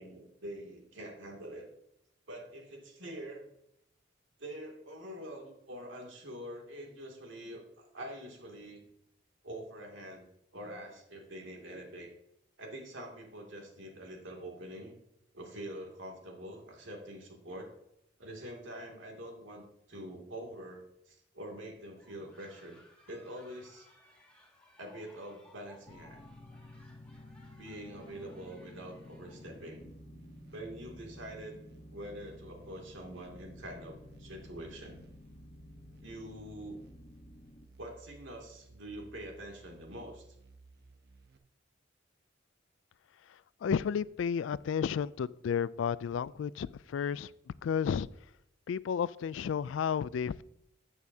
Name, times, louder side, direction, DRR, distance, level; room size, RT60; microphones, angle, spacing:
voice 1, 0.0-1.7 2.3-3.5 4.4-8.8 9.4-10.3 10.5-12.1 12.6-15.0 15.3-17.8 18.2-22.8 23.1-23.9 24.8-26.2 27.6-29.9 30.5-31.6 31.9-35.0 36.0-36.8 37.8-40.3, right 1 dB, 75° right, 2.5 m, -45 dB
sound 1, 21.9-29.8, left 1 dB, 5° left, 2.0 m, -62 dB
sound 2, 25.9-37.7, left 1 dB, 35° left, 0.8 m, -53 dB
sound 3, 29.8-41.4, right 3 dB, 55° right, 0.8 m, -57 dB
voice 2, 43.3-47.3 47.6-48.1 48.7-50.4, left 7 dB, 75° left, 0.3 m, -32 dB
13.0 x 8.4 x 2.8 m
head